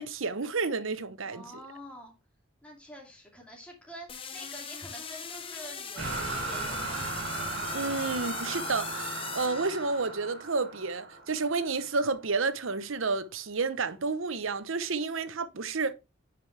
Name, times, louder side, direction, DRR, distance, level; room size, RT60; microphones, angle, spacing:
voice 1, 0.0-1.4 7.7-15.9, right 4 dB, 75° right, 0.9 m, -30 dB
voice 2, 1.2-2.1 2.6-7.2, equal, 5° left, 2.4 m, -47 dB
sound 1, 4.1-10.3, left 6 dB, 25° left, 0.9 m, -40 dB
sound 2, 6.0-12.0, right 3 dB, 60° right, 2.5 m, -36 dB
9.5 x 5.2 x 3.3 m
head